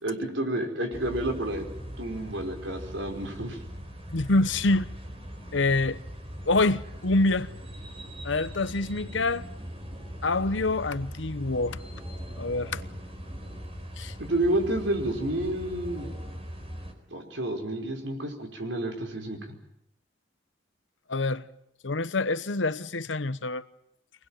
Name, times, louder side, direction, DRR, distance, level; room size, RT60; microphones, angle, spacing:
voice 1, 0.0-1.6 2.0-3.6 14.2-16.1 17.1-19.4, right 1 dB, 75° right, 5.0 m, -30 dB
sound 1, 0.9-16.9, equal, 30° right, 4.2 m, -40 dB
voice 2, 4.1-4.9 5.5-6.0 6.4-7.5 8.2-9.5 10.2-11.8 12.4-12.8 14.0-14.1 21.1-21.5 21.8-23.7, left 2 dB, 70° left, 1.0 m, -26 dB
25.0 x 20.0 x 9.0 m
head